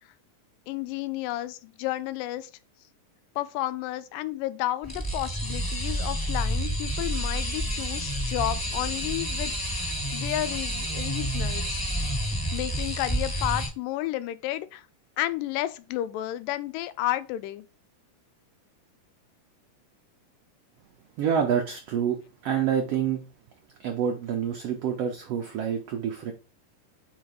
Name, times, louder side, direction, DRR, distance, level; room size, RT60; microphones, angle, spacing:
voice 1, 0.7-2.5 3.4-11.8 12.5-14.9 15.2-17.7, left 14 dB, 90° left, 2.2 m, -32 dB
sound 1, 4.8-13.7, equal, 10° left, 1.0 m, -29 dB
voice 2, 21.2-22.2 22.4-23.2 23.8-26.3, right 8 dB, 85° right, 1.3 m, -27 dB
5.1 x 4.0 x 4.8 m
omnidirectional pair, 3.8 m